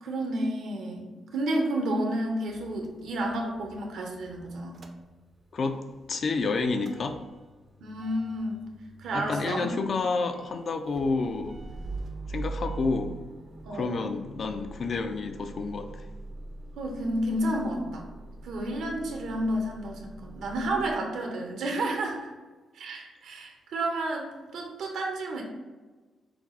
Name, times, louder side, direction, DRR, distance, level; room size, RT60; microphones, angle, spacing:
voice 1, 0.0-4.8 7.8-8.6 9.0-10.0 13.6-14.0 16.8-18.1 18.4-22.3 22.7-24.3 24.5-25.4, right 1 dB, 85° right, 1 dB, 1.0 m, -31 dB
Motor vehicle (road) / Engine starting / Idling, 2.5-5.6 6.0-20.9, right 3 dB, 40° right, 0.5 m, -43 dB
voice 2, 6.1-7.2 9.1-11.6 12.3-13.1 13.7-16.1, left 4 dB, 50° left, 6 dB, 0.4 m, -29 dB
5.9 x 2.0 x 3.9 m, 1.3 s
cardioid pair, 105°, 0 cm